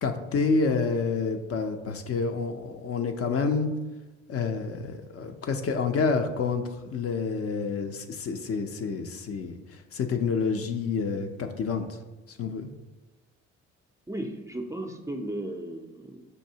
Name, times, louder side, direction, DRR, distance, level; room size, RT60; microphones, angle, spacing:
voice 1, 0.0-3.7 4.3-9.6 9.9-11.9 12.3-12.7, left 4 dB, 45° left, 6 dB, 0.5 m, -28 dB
voice 2, 14.1-16.2, right 1 dB, 10° right, 3 dB, 0.4 m, -35 dB
6.3 x 2.6 x 2.8 m, 1.1 s
supercardioid pair, 65°, 32 cm